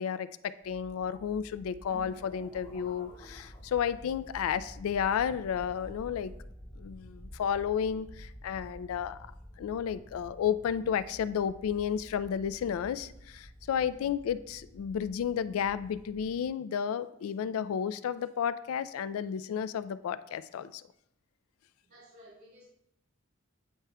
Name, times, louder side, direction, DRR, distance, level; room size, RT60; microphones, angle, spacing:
voice 1, 0.0-6.3 6.8-9.2 9.6-20.8, left 8 dB, 80° left, 16 dB, 0.3 m, -32 dB
sound 1, 0.6-16.4, equal, ahead, 0.6 m, -50 dB
sound 2, 1.9-4.3, left 1 dB, 25° left, 2.0 m, -53 dB
voice 2, 21.8-22.6, equal, 75° right, -8 dB, 2.0 m, -56 dB
9.0 x 4.8 x 2.2 m, 0.77 s
head